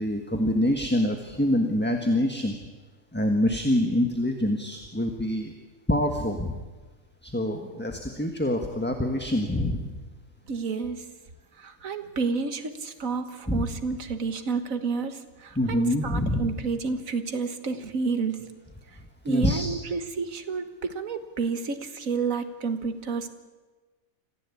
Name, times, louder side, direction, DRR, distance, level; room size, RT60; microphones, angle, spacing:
voice 1, 0.0-2.5 3.1-5.5 5.9-6.6 7.2-10.0 13.5-13.7 15.5-16.5 19.2-19.7, left 1 dB, 10° left, 3 dB, 1.4 m, -25 dB
voice 2, 10.5-11.1 11.6-18.5 19.3-23.3, right 4 dB, 75° right, 8 dB, 1.9 m, -30 dB
25.5 x 15.5 x 8.5 m, 1.3 s
omnidirectional pair, 1.4 m